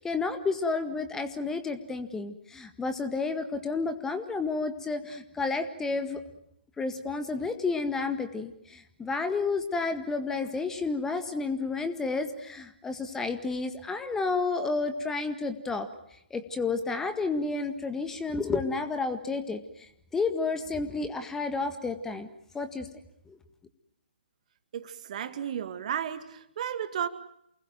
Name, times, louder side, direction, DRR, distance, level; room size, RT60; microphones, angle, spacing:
voice 1, 0.0-6.2 6.8-15.9 16.3-19.6 20.1-22.3 22.5-22.9 23.3-23.4, left 4 dB, 10° left, 8 dB, 1.7 m, -31 dB
voice 2, 24.7-27.1, right 9 dB, 40° right, 10 dB, 2.2 m, -33 dB
29.5 x 20.5 x 9.3 m, 0.75 s
figure-of-eight pair, 130°, 6 cm